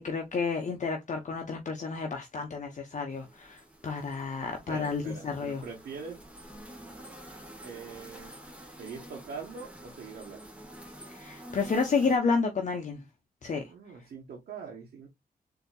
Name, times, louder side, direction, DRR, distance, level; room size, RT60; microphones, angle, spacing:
voice 1, 0.0-5.6 11.1-13.0 13.4-13.7, left 4 dB, 50° left, 0.8 m, -30 dB
sound 1, 3.1-12.2, right 1 dB, 10° right, 1.3 m, -48 dB
voice 2, 4.5-6.2 7.6-8.3 8.7-10.4 13.6-15.1, right 5 dB, 85° right, 1.0 m, -43 dB
4.0 x 2.8 x 2.3 m
cardioid pair, 65°, 16 cm